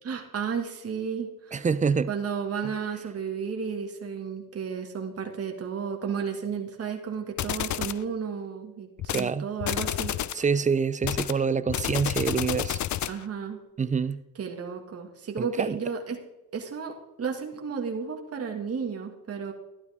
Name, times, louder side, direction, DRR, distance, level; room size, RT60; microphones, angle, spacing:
voice 1, 0.0-1.7 2.1-10.4 13.1-13.6 14.4-16.2 16.5-19.5, right 6 dB, 40° right, 2.0 m, -33 dB
voice 2, 1.5-2.1 2.6-2.7 9.1-9.5 10.3-12.8 13.8-14.2 15.4-15.8, right 5 dB, 20° right, 0.5 m, -26 dB
sound 1, 7.4-8.0 9.0-9.3 9.6-10.4 11.0-13.2, left 12 dB, 50° left, 0.6 m, -30 dB
12.5 x 12.0 x 3.6 m
cardioid pair, 95°, 38 cm